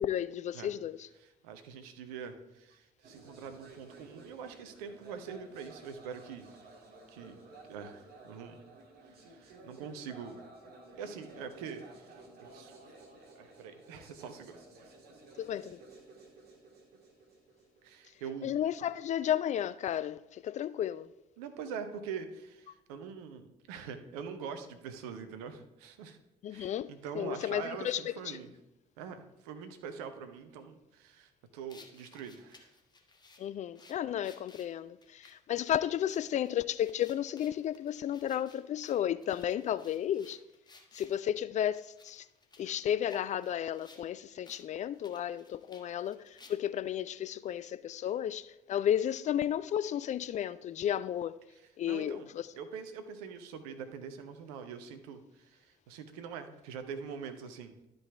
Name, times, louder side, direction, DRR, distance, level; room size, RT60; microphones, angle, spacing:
voice 1, 0.0-1.1 15.4-15.8 18.4-21.1 26.4-28.4 33.4-40.4 40.9-42.3 42.6-51.3 51.8-52.5, left 10 dB, 35° left, 0.4 m, -33 dB
voice 2, 1.2-6.6 7.1-7.4 7.7-8.6 9.0-10.4 11.0-12.7 13.4-14.9 17.8-18.5 18.8-18.9 21.4-26.2 26.5-28.5 29.0-32.7 51.6-52.3 52.6-57.7, right 6 dB, 65° right, 0.9 m, -44 dB
sound 1, 3.0-18.9, right 2 dB, 50° right, 1.9 m, -54 dB
sound 2, 31.7-41.2 41.7-44.1 44.4-44.6 44.9-46.9, left 3 dB, 20° left, 1.3 m, -59 dB
12.0 x 5.2 x 3.4 m
figure-of-eight pair, 50°, 20 cm